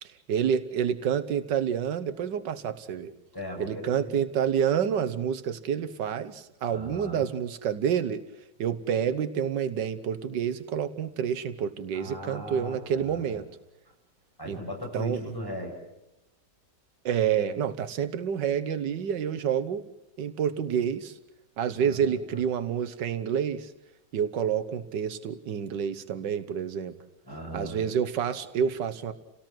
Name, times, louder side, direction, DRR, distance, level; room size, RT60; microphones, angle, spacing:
voice 1, 0.0-3.1 3.6-8.2 8.6-13.5 14.5-14.6 14.9-15.2 17.0-19.8 20.2-21.2 21.6-23.7 24.1-26.9 27.5-29.1, right 8 dB, 85° right, 11 dB, 1.7 m, -28 dB
voice 2, 3.3-4.1 6.7-7.2 11.9-13.4 14.4-15.8 21.7-22.4 27.2-27.8, equal, 10° left, -1 dB, 7.8 m, -38 dB
29.0 x 18.0 x 7.7 m, 0.92 s
omnidirectional pair, 1.8 m